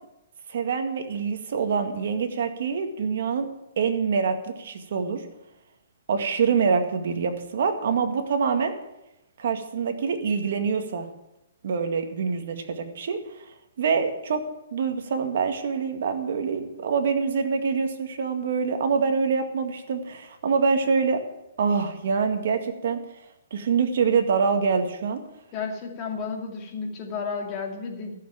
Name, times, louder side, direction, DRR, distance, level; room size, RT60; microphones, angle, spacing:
voice 1, 0.5-3.5 3.8-5.2 6.1-8.7 9.4-11.1 11.6-13.2 13.8-14.4 14.7-21.2 21.6-23.0 23.5-25.2, right 5 dB, 60° right, 6 dB, 1.9 m, -25 dB
voice 2, 25.5-28.1, left 5 dB, 25° left, 1 dB, 2.4 m, -32 dB
13.5 x 7.1 x 8.7 m, 0.90 s
hypercardioid pair, 165°, 0 cm